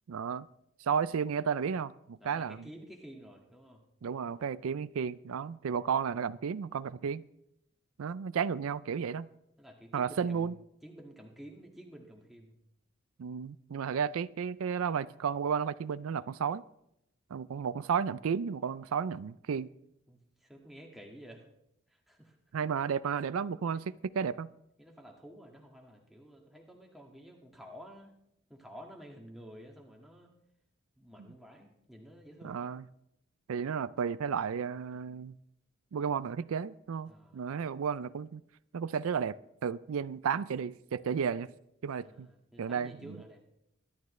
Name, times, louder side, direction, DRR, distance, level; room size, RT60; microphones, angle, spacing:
voice 1, 0.1-0.5 0.8-2.7 4.0-7.2 8.0-9.3 9.9-10.5 13.2-16.6 17.3-19.7 22.5-23.8 24.1-24.5 32.4-32.9 33.5-35.4 35.9-38.4 38.7-39.4 39.6-41.5 41.8-42.3 42.6-43.2, right 7 dB, 85° right, 16 dB, 0.4 m, -33 dB
voice 2, 2.2-3.8 9.6-10.5 10.8-12.6 20.1-21.4 22.1-22.3 23.7-23.8 24.8-28.1 28.5-30.3 31.0-32.6 37.1-37.4 42.0-43.5, equal, ahead, -1 dB, 1.8 m, -51 dB
22.5 x 11.5 x 3.2 m, 0.80 s
head